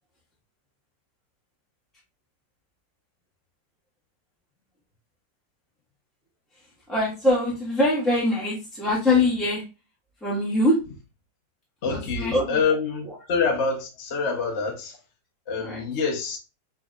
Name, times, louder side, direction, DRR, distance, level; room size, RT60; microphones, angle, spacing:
voice 1, 6.9-9.6 10.2-10.8 11.9-12.6 13.0-13.1 15.6-15.8, left 1 dB, ahead, 1.3 m, -23 dB
voice 2, 11.8-15.0 15.5-16.4, left 5 dB, 50° left, 1.0 m, -26 dB
6.1 x 3.3 x 2.4 m
omnidirectional pair, 1.9 m